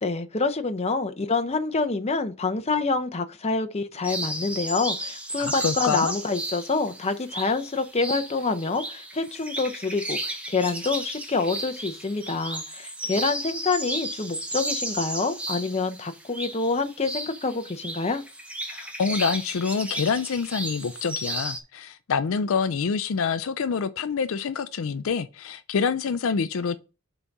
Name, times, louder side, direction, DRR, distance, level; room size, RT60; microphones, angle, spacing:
voice 1, 0.0-18.2, left 3 dB, 30° left, 0.7 m, -27 dB
sound 1, 4.0-21.6, right 1 dB, 5° right, 0.9 m, -34 dB
voice 2, 5.4-6.1 18.7-26.8, left 5 dB, 70° left, 0.4 m, -26 dB
5.5 x 4.1 x 6.0 m
head